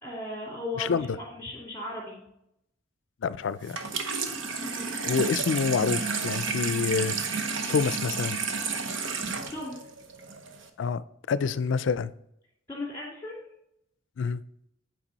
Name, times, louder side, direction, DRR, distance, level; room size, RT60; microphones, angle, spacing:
voice 1, 0.0-2.3 4.7-5.0 9.5-9.7 12.7-13.4, left 2 dB, 15° left, -7 dB, 2.4 m, -37 dB
voice 2, 0.8-1.2 3.2-3.8 5.0-7.2 7.7-8.4 10.8-12.1 14.2-14.4, left 5 dB, 75° left, 17 dB, 0.4 m, -27 dB
Water tap faucet / Sink (filling or washing), 3.6-10.7, right 5 dB, 85° right, 0.9 m, -31 dB
8.8 x 5.0 x 4.0 m, 0.78 s
head